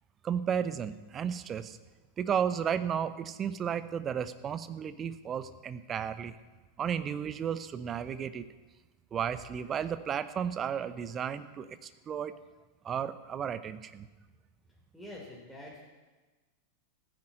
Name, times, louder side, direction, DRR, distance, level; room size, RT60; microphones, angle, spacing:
voice 1, 0.2-1.8 2.2-6.4 6.8-8.5 9.1-12.4 12.8-14.1, right 8 dB, 25° right, 13 dB, 0.8 m, -33 dB
voice 2, 14.9-15.8, left 1 dB, ahead, -4 dB, 3.6 m, -46 dB
14.5 x 10.0 x 7.7 m, 1.2 s
figure-of-eight pair, 90°, 0 cm